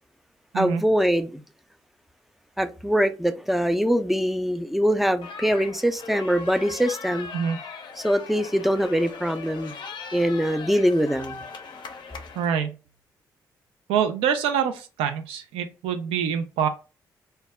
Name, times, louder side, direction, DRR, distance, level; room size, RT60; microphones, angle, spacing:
voice 1, 0.5-1.4 2.6-7.3 8.0-9.7 10.1-11.4, equal, ahead, 0.4 m, -23 dB
sound 1, 5.2-12.5, left 5 dB, 55° left, 0.5 m, -39 dB
voice 2, 12.4-12.8 13.9-16.7, right 8 dB, 75° right, 0.4 m, -25 dB
2.2 x 2.0 x 3.4 m
hypercardioid pair, 40°, 9 cm